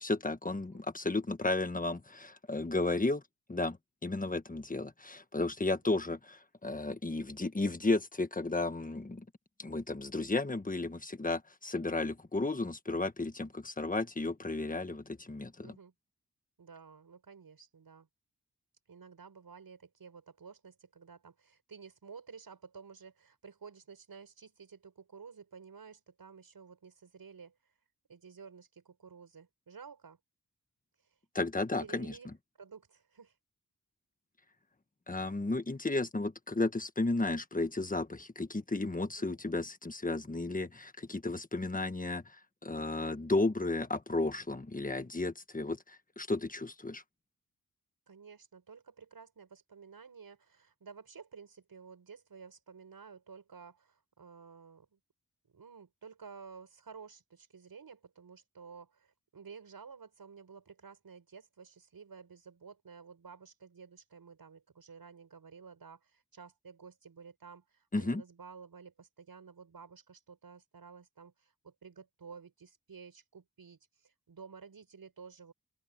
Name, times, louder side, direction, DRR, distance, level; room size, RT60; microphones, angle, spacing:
voice 1, 0.0-3.2 3.5-3.8 4.0-9.2 9.6-15.7 31.3-32.2 35.1-42.2 42.6-47.0 67.9-68.2, left 2 dB, 25° left, 1.5 m, -33 dB
voice 2, 15.6-15.9 16.6-18.1 18.9-27.5 28.1-30.2 31.8-32.3 32.6-33.3 39.2-39.4 48.1-55.0 55.5-75.5, right 5 dB, 90° right, 5.8 m, -52 dB
open air
wide cardioid pair, 110°, 35 cm